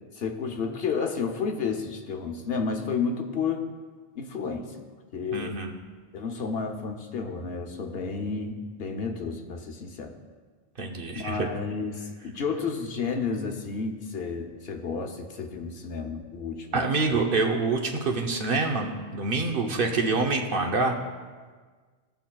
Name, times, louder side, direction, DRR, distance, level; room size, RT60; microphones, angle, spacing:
voice 1, 0.1-3.7 4.2-4.8 5.1-5.6 6.1-10.1 11.1-16.8, left 5 dB, 65° left, 4 dB, 1.0 m, -31 dB
voice 2, 5.3-5.8 10.8-11.5 16.7-21.0, right 3 dB, 55° right, 2 dB, 0.9 m, -26 dB
16.5 x 5.7 x 2.3 m, 1.5 s
omnidirectional pair, 1.1 m